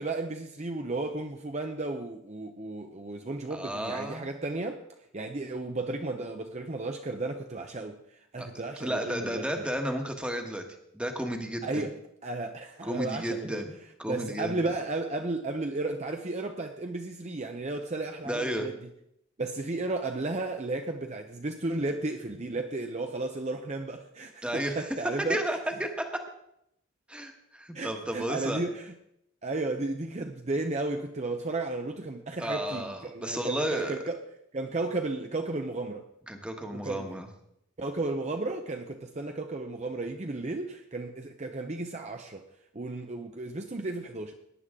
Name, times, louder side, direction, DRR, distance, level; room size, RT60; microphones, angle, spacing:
voice 1, 0.0-4.9 5.1-9.7 11.6-13.7 14.1-18.8 19.4-25.4 27.7-28.9 29.4-34.3 34.5-36.0 36.7-37.2 37.8-42.5 42.7-44.3, right 2 dB, 35° right, 0.7 m, -34 dB
voice 2, 3.5-4.3 8.4-8.5 8.8-10.6 10.9-11.9 12.8-13.7 14.0-14.6 18.2-18.7 24.4-24.8 25.3-26.1 27.1-28.6 32.4-34.0 36.3-37.3, right 1 dB, 5° right, 1.3 m, -32 dB
18.0 x 10.0 x 3.7 m
head